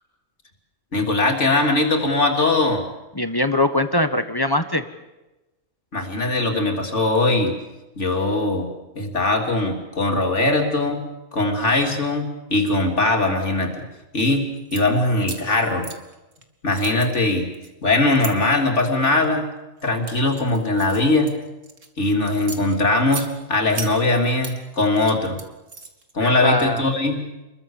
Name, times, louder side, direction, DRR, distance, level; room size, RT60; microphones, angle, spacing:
voice 1, 0.9-2.8 5.9-7.6 8.0-8.7 9.0-11.0 11.3-13.8 14.1-15.9 16.6-17.5 17.8-19.4 19.8-21.3 22.0-25.4 26.1-27.2, left 2 dB, 60° left, 3 dB, 3.6 m, -20 dB
voice 2, 3.1-4.8 26.2-26.8, left 1 dB, 20° left, 9 dB, 1.4 m, -21 dB
sound 1, 14.5-14.8 15.2-16.4 16.7-18.3 19.0-19.3 19.8-21.9 22.3-23.3 23.7-24.6 24.9-26.1, right 4 dB, 70° right, 2.6 m, -36 dB
29.0 x 22.5 x 7.3 m, 1.0 s
omnidirectional pair, 1.3 m